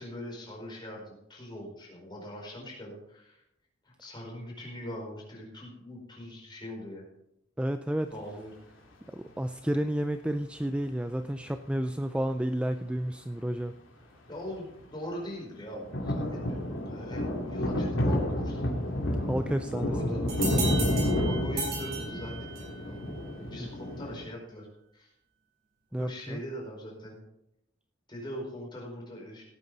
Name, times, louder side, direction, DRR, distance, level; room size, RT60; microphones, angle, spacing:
voice 1, 0.0-3.4 3.8-7.0 8.1-8.5 14.3-14.7 14.9-18.8 19.7-20.2 21.2-24.7 24.9-25.1 26.0-27.2 28.1-29.4, equal, 25° left, -2 dB, 4.7 m, -41 dB
voice 2, 7.6-8.1 9.1-13.7 19.3-20.3 25.9-26.4, right 1 dB, 5° right, 9 dB, 0.4 m, -31 dB
sound 1, 14.4-14.5 14.8-14.9 15.8-24.2, left 1 dB, 90° left, 2.8 m, -30 dB
sound 2, 20.3-22.8, right 4 dB, 55° right, 4.6 m, -35 dB
17.0 x 9.3 x 4.0 m, 0.79 s
head